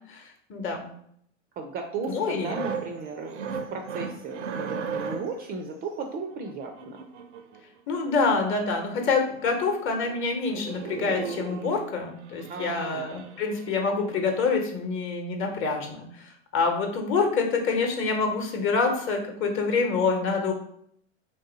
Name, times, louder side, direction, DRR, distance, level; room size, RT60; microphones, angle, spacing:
voice 1, 0.5-0.9 2.1-2.5 7.9-16.2 16.5-20.5, left 4 dB, 35° left, 3 dB, 0.9 m, -26 dB
voice 2, 1.6-7.0 12.5-13.1, right 4 dB, 30° right, 4 dB, 0.4 m, -35 dB
sound 1, 2.2-5.5 6.5-7.6 8.8-8.9 9.1-9.2 9.5-9.7 10.0-10.2 10.5-11.8 12.2-13.9 14.3-14.5, right 6 dB, 90° right, 0.5 m, -37 dB
3.2 x 2.7 x 3.9 m, 0.68 s
hypercardioid pair, 100°, 35 cm